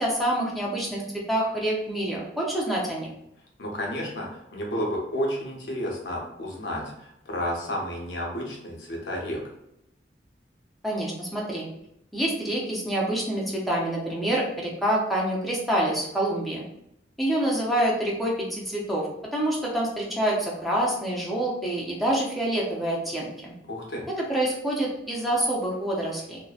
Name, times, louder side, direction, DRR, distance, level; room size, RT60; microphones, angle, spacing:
voice 1, 0.0-3.1 10.8-11.7 12.1-16.6 17.2-19.1 19.3-23.5 24.3-26.4, right 1 dB, ahead, -4 dB, 0.4 m, -27 dB
voice 2, 3.6-9.4 23.7-24.0, equal, 80° left, -1 dB, 0.7 m, -31 dB
2.6 x 2.0 x 2.3 m, 0.79 s
head